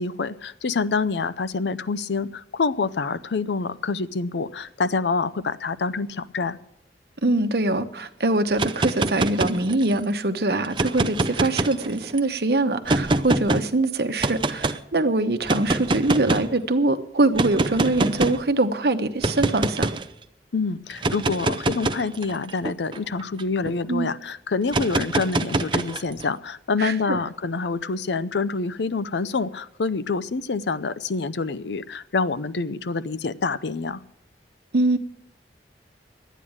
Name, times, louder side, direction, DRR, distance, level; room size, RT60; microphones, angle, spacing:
voice 1, 0.0-6.6 20.5-34.0, left 4 dB, 80° left, 15 dB, 0.6 m, -27 dB
voice 2, 7.2-19.9 23.9-24.1 26.8-27.2 34.7-35.0, right 2 dB, 65° right, 8 dB, 1.0 m, -23 dB
sound 1, 8.5-10.0 10.6-12.2 12.9-13.6 14.2-14.8 15.4-16.5 17.4-18.4 19.2-20.0 20.9-23.7 24.7-26.2, right 2 dB, 25° right, 0.6 m, -25 dB
12.0 x 9.2 x 8.6 m, 0.78 s
head